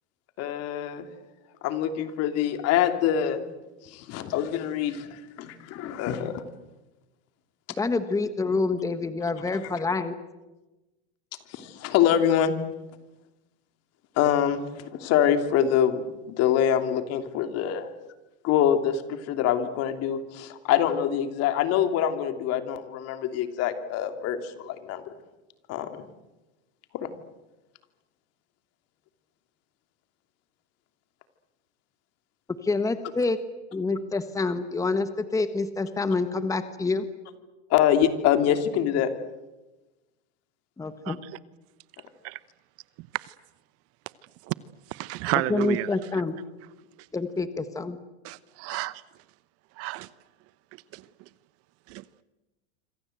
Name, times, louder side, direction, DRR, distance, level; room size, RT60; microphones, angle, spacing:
voice 1, 0.4-1.1 1.6-3.4 3.9-6.4 11.5-12.5 14.2-17.9 18.4-25.1 25.7-26.0 26.9-27.1 37.7-39.1, left 9 dB, 45° left, 3.0 m, -25 dB
voice 2, 7.8-10.1 32.6-33.4 33.7-37.0 40.8-41.2 45.5-46.4 47.1-48.0, left 3 dB, 10° left, 1.5 m, -27 dB
voice 3, 43.0-43.3 44.5-44.6 44.9-46.1 48.2-49.0 49.8-50.1 50.9-51.0 51.9-52.0, right 18 dB, 40° right, 0.9 m, -31 dB
27.0 x 25.0 x 8.0 m
supercardioid pair, 125°, 36 cm